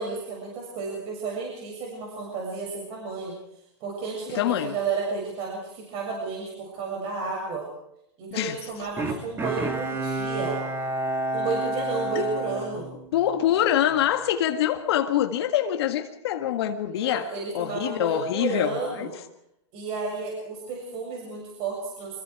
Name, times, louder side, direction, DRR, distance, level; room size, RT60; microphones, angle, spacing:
voice 1, 0.0-3.4 3.8-7.7 8.2-10.6 11.3-12.9 16.9-19.1 19.7-22.2, right 4 dB, 40° right, -1 dB, 7.2 m, -32 dB
voice 2, 4.3-4.7 8.3-8.7 12.2-12.3 13.1-19.1, left 11 dB, 60° left, 6 dB, 1.8 m, -25 dB
Bowed string instrument, 9.0-13.5 13.9-14.0, right 2 dB, 15° right, 2.3 m, -30 dB
25.5 x 23.0 x 4.9 m, 0.79 s
hypercardioid pair, 135°, 15 cm